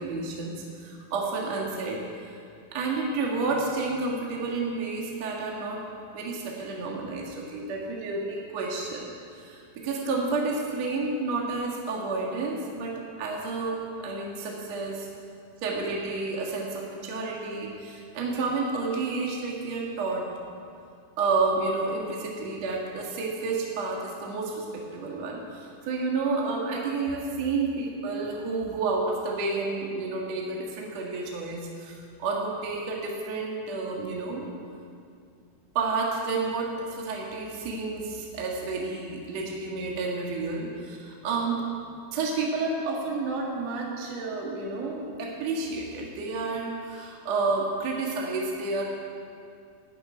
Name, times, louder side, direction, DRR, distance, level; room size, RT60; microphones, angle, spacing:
voice 1, 0.0-2.4 2.7-5.8 6.1-15.1 15.6-20.3 21.2-34.5 35.7-48.8, right 3 dB, 55° right, -2 dB, 2.1 m, -30 dB
14.0 x 7.9 x 9.5 m, 2.4 s
omnidirectional pair, 5.1 m